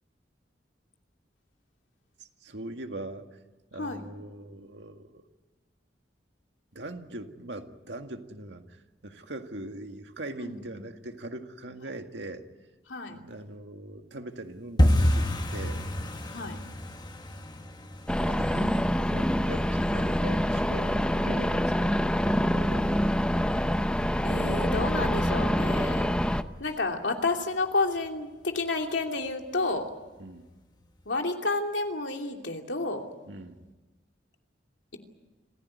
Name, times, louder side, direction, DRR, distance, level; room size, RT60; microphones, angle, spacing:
voice 1, 2.2-3.3 3.7-5.2 6.7-12.4 13.1-15.8 17.5-17.6 18.2-23.1 30.2-30.5 33.3-33.6, right 2 dB, 75° right, 5 dB, 2.0 m, -41 dB
voice 2, 10.4-10.8 12.9-13.2 16.3-16.6 23.1-23.2 24.2-26.1 26.6-29.9 31.1-33.0, left 3 dB, 85° left, 3 dB, 2.8 m, -30 dB
sound 1, 14.8-25.5 25.8-26.5 26.7-27.0 27.3-27.7 28.0-28.1 28.6-29.1 29.4-29.5 30.0-30.1, equal, 25° left, 1.7 m, -31 dB
sound 2, 18.1-26.4, equal, 5° left, 0.7 m, -26 dB
27.0 x 16.0 x 9.7 m, 1.2 s
head